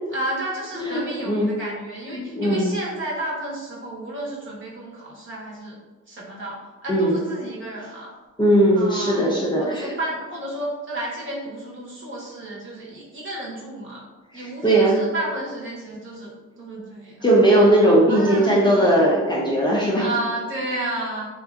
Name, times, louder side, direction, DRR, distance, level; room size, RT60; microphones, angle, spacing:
voice 1, 0.1-5.8 6.1-8.1 8.7-14.0 14.3-17.3 18.1-18.9 20.0-21.3, right 1 dB, 40° right, -5 dB, 1.0 m, -32 dB
voice 2, 0.8-1.5 2.1-2.7 6.9-7.2 8.4-9.9 14.4-15.0 17.2-20.0, right 1 dB, 15° left, -5 dB, 0.5 m, -18 dB
2.6 x 2.5 x 2.3 m, 1.3 s
cardioid pair, 90°, 30 cm